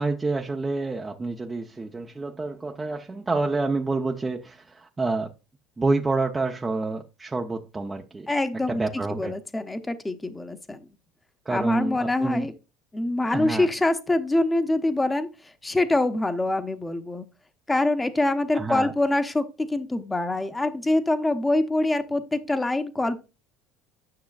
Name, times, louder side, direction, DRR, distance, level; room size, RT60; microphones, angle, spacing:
voice 1, 0.0-5.3 5.8-8.3 8.7-9.3 11.5-12.5 13.3-13.7 18.5-18.9, right 3 dB, 20° right, 0.8 m, -28 dB
voice 2, 8.3-8.8 9.1-10.8 11.5-12.5 12.9-15.3 15.6-17.3 17.7-23.2, left 2 dB, 15° left, 1.1 m, -25 dB
9.5 x 6.2 x 2.4 m
supercardioid pair, 85°, 0 cm